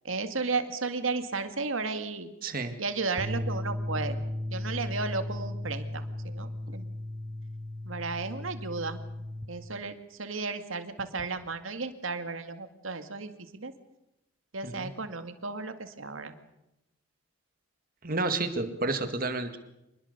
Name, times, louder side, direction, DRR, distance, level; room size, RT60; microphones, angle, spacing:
voice 1, 0.0-2.3 2.8-4.2 4.5-6.9 7.8-9.0 9.5-13.7 14.5-16.4, right 4 dB, 80° right, 8 dB, 2.2 m, -34 dB
voice 2, 2.4-2.8 14.6-14.9 18.0-19.6, right 3 dB, 45° right, 8 dB, 2.2 m, -30 dB
sound 1, 3.2-9.4, left 1 dB, 5° right, 3.2 m, -35 dB
26.0 x 20.5 x 6.8 m, 0.90 s
head